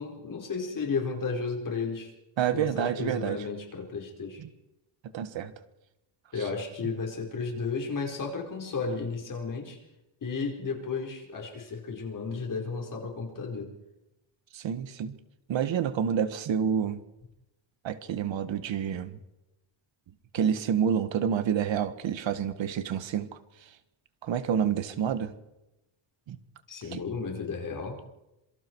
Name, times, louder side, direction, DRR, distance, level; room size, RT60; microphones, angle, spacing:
voice 1, 0.0-2.1 2.5-4.4 6.3-9.8 10.2-13.7 26.7-28.0, left 4 dB, 40° left, 2 dB, 4.9 m, -33 dB
voice 2, 2.4-3.4 4.4-4.5 5.1-5.5 6.4-6.5 14.5-15.1 15.5-17.0 17.8-19.2 20.3-23.3 24.2-25.3 26.3-26.4 26.9-27.0, right 8 dB, 65° right, 11 dB, 1.8 m, -28 dB
27.0 x 24.0 x 4.8 m, 0.92 s
cardioid pair, 155°, 49 cm